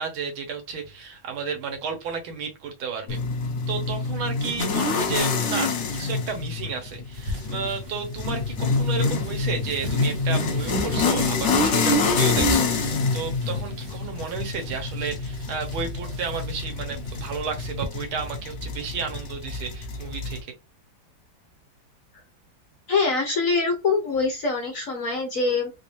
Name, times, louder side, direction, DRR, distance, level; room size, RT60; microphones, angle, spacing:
voice 1, 0.0-3.2 3.7-20.5, right 6 dB, 80° right, 1.9 m, -32 dB
sound 1, 3.1-20.4, left 3 dB, 75° left, 0.6 m, -26 dB
sound 2, 7.1-17.9, right 1 dB, 50° right, 1.0 m, -39 dB
voice 2, 22.9-25.7, left 4 dB, 55° left, 1.0 m, -24 dB
3.9 x 2.6 x 3.1 m
omnidirectional pair, 2.2 m